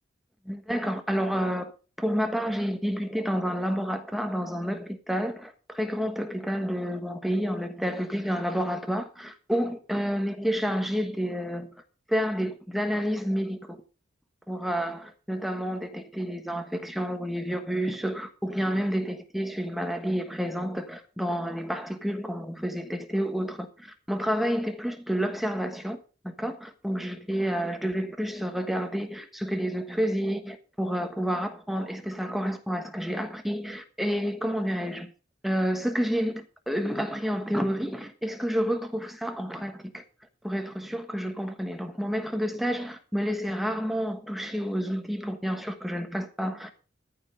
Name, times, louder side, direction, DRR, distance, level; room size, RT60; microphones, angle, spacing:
voice 1, 0.4-1.7 2.0-11.7 12.1-13.8 14.5-26.0 26.2-35.1 35.4-40.0 40.4-46.7, equal, ahead, 1.3 m, -29 dB
14.0 x 5.8 x 5.6 m
head